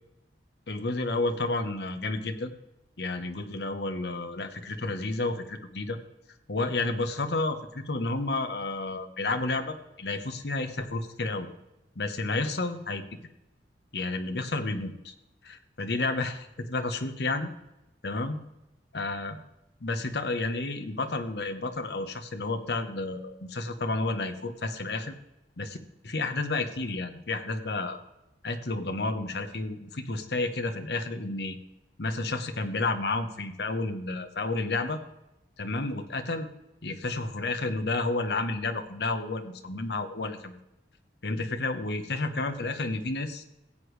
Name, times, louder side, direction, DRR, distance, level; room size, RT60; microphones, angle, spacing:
voice 1, 0.7-2.5 3.0-6.0 6.5-11.5 11.9-13.0 13.9-15.1 15.4-17.5 18.0-18.4 18.9-19.4 19.8-25.1 25.6-25.8 26.0-28.0 28.4-31.6 32.0-35.0 35.6-36.5 36.8-40.6 41.2-43.4, left 2 dB, 65° left, 7 dB, 1.0 m, -31 dB
16.0 x 8.1 x 3.3 m, 0.93 s
head